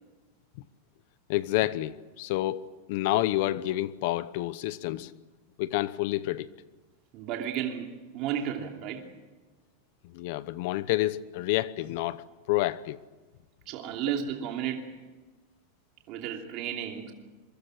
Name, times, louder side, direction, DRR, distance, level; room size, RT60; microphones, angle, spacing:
voice 1, 1.3-5.1 5.6-6.5 10.0-13.0, left 16 dB, 50° left, 0.9 m, -29 dB
voice 2, 7.1-9.0 13.7-14.9 16.1-17.1, right 9 dB, 35° right, 2.8 m, -33 dB
27.0 x 23.5 x 6.5 m
supercardioid pair, 175°, 0 cm